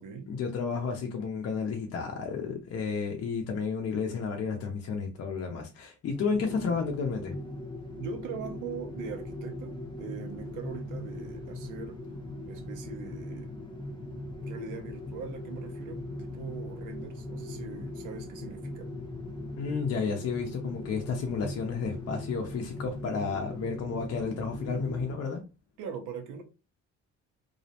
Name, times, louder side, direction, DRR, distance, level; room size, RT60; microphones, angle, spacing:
voice 1, 0.3-7.3 19.6-25.4, left 5 dB, 55° left, 0.6 m, -32 dB
sound 1, 6.1-25.1, left 1 dB, 15° left, 0.7 m, -40 dB
voice 2, 7.9-12.0 12.5-13.5 14.4-18.9 25.8-26.4, right 6 dB, 85° right, 0.7 m, -41 dB
2.4 x 2.0 x 2.8 m
cardioid pair, 90°, 30 cm